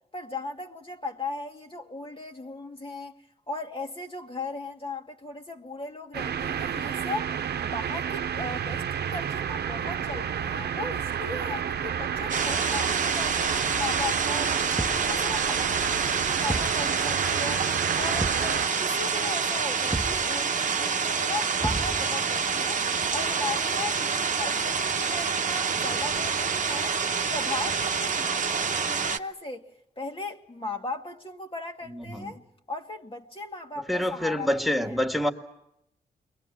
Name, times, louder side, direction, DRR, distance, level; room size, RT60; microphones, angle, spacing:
voice 1, 0.1-3.2 3.5-7.4 7.6-14.5 14.9-17.7 18.0-22.8 23.1-27.0 27.3-29.7 30.0-32.4 32.7-35.0, left 3 dB, 30° left, 2.0 m, -37 dB
sound 1, 6.1-18.7, right 8 dB, 75° right, 0.9 m, -31 dB
sound 2, 12.3-29.2, right 5 dB, 50° right, 1.0 m, -27 dB
Thump thud, 14.8-15.2 16.5-16.8 18.2-18.5 19.9-20.3 21.6-22.2, right 2 dB, 15° right, 1.0 m, -32 dB
voice 2, 31.9-32.3 33.9-35.3, left 1 dB, ahead, 2.0 m, -27 dB
29.0 x 23.0 x 7.5 m
cardioid pair, 65°, 17 cm